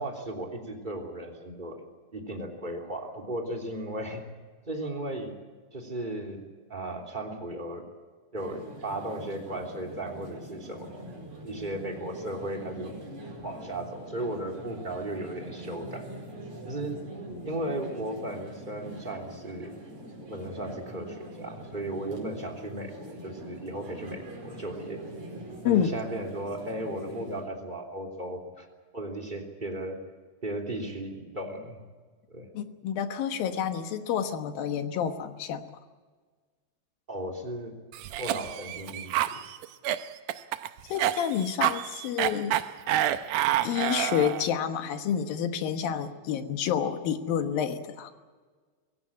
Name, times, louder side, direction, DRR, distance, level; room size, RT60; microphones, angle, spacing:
voice 1, 0.0-1.8 2.1-4.3 4.7-5.4 5.7-6.4 6.7-7.9 8.3-11.2 11.4-12.9 13.4-16.1 16.7-17.0 17.4-19.8 20.2-25.0 25.6-28.7 28.9-30.0 30.4-31.8 32.3-32.5 37.1-39.4, right 1 dB, 15° right, 1 dB, 2.8 m, -36 dB
sound 1, 8.4-27.4, right 1 dB, 45° right, 6.2 m, -43 dB
voice 2, 32.5-35.6 40.9-42.6 43.6-48.1, left 9 dB, 70° left, 8 dB, 2.9 m, -29 dB
Cough, 37.9-44.5, right 12 dB, 80° right, 1.9 m, -28 dB
23.0 x 16.5 x 8.6 m, 1.5 s
omnidirectional pair, 4.6 m